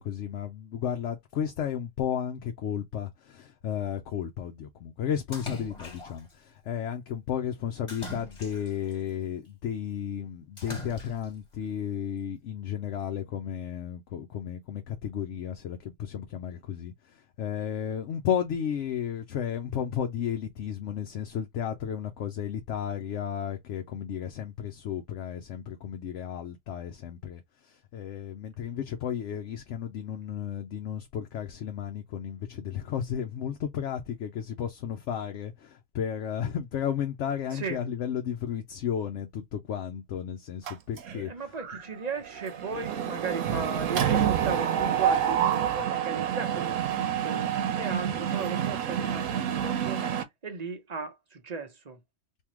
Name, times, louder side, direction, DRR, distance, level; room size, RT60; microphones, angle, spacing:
voice 1, 0.0-41.6, left 9 dB, 70° left, 0.9 m, -33 dB
Splash splatter, 5.3-6.3 7.9-8.9 10.6-11.4, equal, 25° left, 1.4 m, -41 dB
voice 2, 37.5-37.8 41.1-50.1 50.4-52.0, right 4 dB, 40° right, 0.8 m, -36 dB
Mechanisms, 40.7-41.3 41.6-41.8 42.1-50.2, right 9 dB, 85° right, 1.1 m, -28 dB
3.6 x 2.7 x 3.0 m
omnidirectional pair, 1.3 m